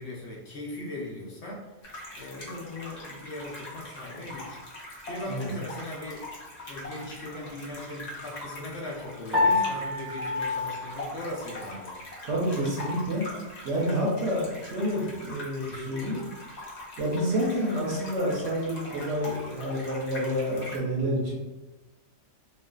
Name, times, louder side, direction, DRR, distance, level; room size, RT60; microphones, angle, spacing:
voice 1, 0.0-1.7 2.1-6.2 6.7-12.0, left 1 dB, 70° left, -4 dB, 0.8 m, -39 dB
sound 1, 1.8-20.8, left 1 dB, 50° left, 0.5 m, -42 dB
Piano, 9.3-11.9, left 3 dB, ahead, 0.7 m, -28 dB
voice 2, 12.2-13.3 13.6-16.2 17.0-21.4, equal, 75° right, -4 dB, 0.9 m, -28 dB
2.5 x 2.3 x 2.2 m, 1.1 s
omnidirectional pair, 1.2 m